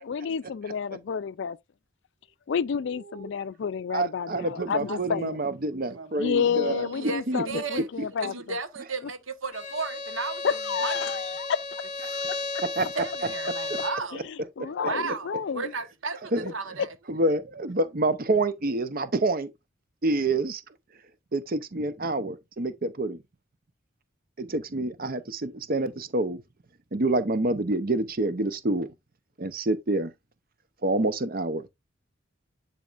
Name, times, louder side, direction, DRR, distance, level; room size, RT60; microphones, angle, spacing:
voice 1, 0.0-1.6 2.5-5.4 6.2-8.3 10.4-11.8 14.3-15.7, left 6 dB, 60° left, 0.4 m, -30 dB
voice 2, 3.9-6.9 7.3-7.4 12.8-12.9 16.3-16.5 17.1-19.5 20.0-20.6 21.3-23.2 24.4-26.4 26.9-28.9 29.4-30.1 30.8-31.7, right 2 dB, 45° right, 0.7 m, -27 dB
voice 3, 4.6-5.2 5.7-6.3 6.6-11.3 12.3-12.4 12.9-14.2 14.8-16.9, right 4 dB, 75° right, 1.2 m, -35 dB
Bowed string instrument, 9.5-14.1, left 3 dB, 35° left, 1.3 m, -33 dB
10.5 x 4.2 x 2.5 m
head